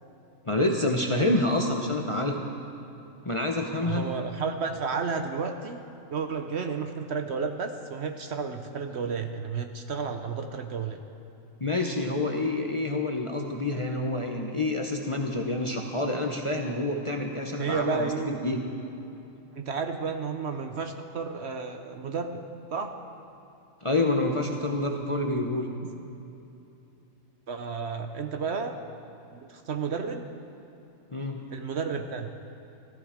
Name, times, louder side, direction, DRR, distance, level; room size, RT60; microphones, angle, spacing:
voice 1, 0.5-2.4 3.2-4.1 11.6-18.6 23.8-25.7 31.1-31.5, left 2 dB, 30° left, 2 dB, 0.7 m, -27 dB
voice 2, 3.8-5.8 6.1-11.0 17.6-18.4 19.6-22.4 22.7-22.9 25.8-25.9 27.5-28.8 29.3-30.3 31.5-32.3, right 5 dB, 60° right, 6 dB, 0.9 m, -32 dB
14.5 x 14.0 x 5.0 m, 2.8 s
omnidirectional pair, 1.4 m